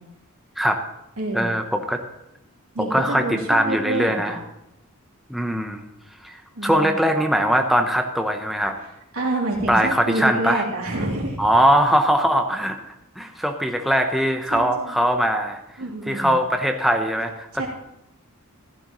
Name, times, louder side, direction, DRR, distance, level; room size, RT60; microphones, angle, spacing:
voice 1, 1.3-2.0 2.8-4.4 5.3-5.8 6.2-8.8 9.7-10.6 11.4-12.8 13.2-15.6 16.1-17.6, equal, ahead, 3 dB, 0.7 m, -21 dB
voice 2, 2.7-4.4 6.5-6.9 8.8-11.4 14.5-15.0 15.8-16.3 17.5-17.7, right 2 dB, 90° right, -3 dB, 3.1 m, -28 dB
15.0 x 12.0 x 3.0 m, 0.87 s
head